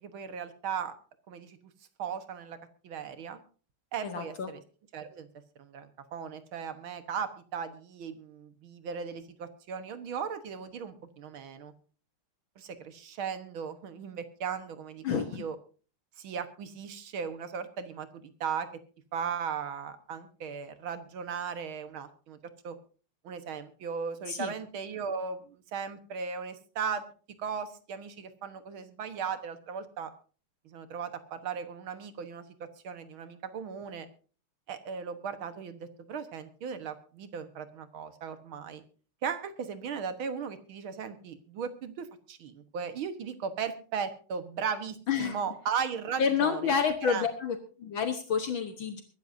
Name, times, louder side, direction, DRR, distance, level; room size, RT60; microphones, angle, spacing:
voice 1, 0.0-0.9 1.3-1.6 2.0-2.6 2.8-3.4 3.9-4.6 4.9-5.3 5.6-11.7 12.6-15.6 16.2-18.7 19.1-22.4 22.6-22.8 23.2-27.0 27.4-30.1 30.7-34.1 34.7-38.8 39.2-46.7 47.0-47.3, right 6 dB, 70° right, 10 dB, 2.1 m, -37 dB
voice 2, 4.0-4.5 15.0-15.4 24.3-24.5 45.1-45.4 46.2-49.0, left 6 dB, 70° left, 7 dB, 1.9 m, -29 dB
23.0 x 13.0 x 2.6 m, 0.39 s
omnidirectional pair, 2.4 m